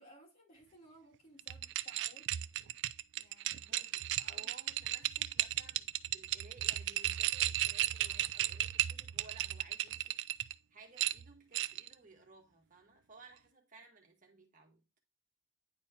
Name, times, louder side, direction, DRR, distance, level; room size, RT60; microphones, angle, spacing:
voice 1, 0.0-2.3 3.1-3.8 4.2-4.5, equal, 40° left, 3.3 m, -60 dB
sound 1, 1.4-10.5 11.0-11.9, right 14 dB, 60° right, 0.3 m, -35 dB
voice 2, 3.7-10.2 10.7-14.8, right 3 dB, 40° right, 1.6 m, -58 dB
9.8 x 4.5 x 2.9 m
head